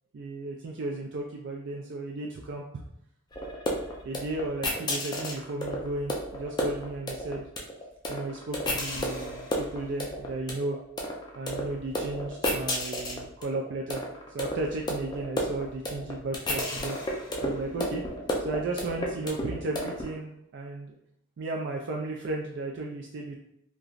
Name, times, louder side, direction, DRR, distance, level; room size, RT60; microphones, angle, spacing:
voice 1, 0.1-2.6 4.0-7.5 8.1-10.8 11.4-14.0 14.3-18.0 18.4-20.9 21.4-23.4, right 2 dB, 55° right, 0 dB, 0.3 m, -34 dB
sound 1, 3.3-20.1, left 1 dB, 20° left, 0.4 m, -32 dB
3.0 x 2.5 x 2.4 m, 0.78 s
head